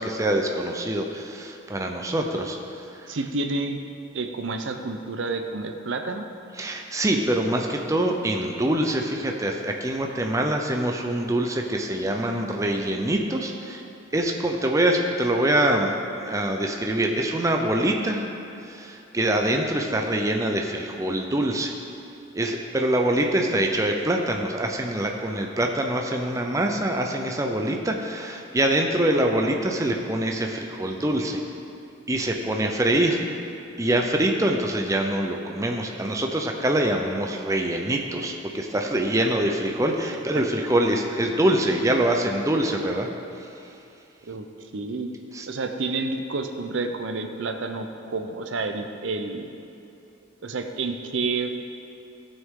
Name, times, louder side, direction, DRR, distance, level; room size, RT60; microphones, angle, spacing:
voice 1, 0.0-3.2 6.6-13.8 14.1-18.2 18.6-21.7 22.3-31.4 32.1-33.2 33.8-43.1 43.4-43.5 45.3-45.5, right 1 dB, 15° right, 2 dB, 0.5 m, -24 dB
voice 2, 3.1-3.8 4.1-6.3 40.3-40.4 44.3-44.5 44.7-45.1 45.5-49.5 50.4-51.5, right 3 dB, 70° right, 6 dB, 0.6 m, -29 dB
15.0 x 6.3 x 3.7 m, 2.6 s
head